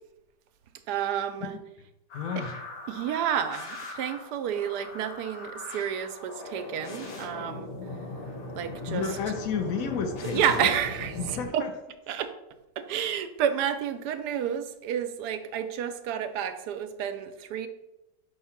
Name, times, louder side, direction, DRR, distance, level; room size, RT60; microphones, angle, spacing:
voice 1, 0.9-1.5 2.4-2.5 2.9-7.8 8.5-9.0 10.2-11.6 12.1-12.3 12.8-17.7, right 9 dB, 80° right, 9 dB, 1.1 m, -30 dB
sound 1, 2.1-11.5, left 2 dB, 85° left, 1.9 m, -40 dB
voice 2, 2.1-2.6 8.9-10.7 11.2-11.7, left 6 dB, 65° left, 5 dB, 1.0 m, -31 dB
5.5 x 3.6 x 5.6 m, 0.94 s
omnidirectional pair, 1.8 m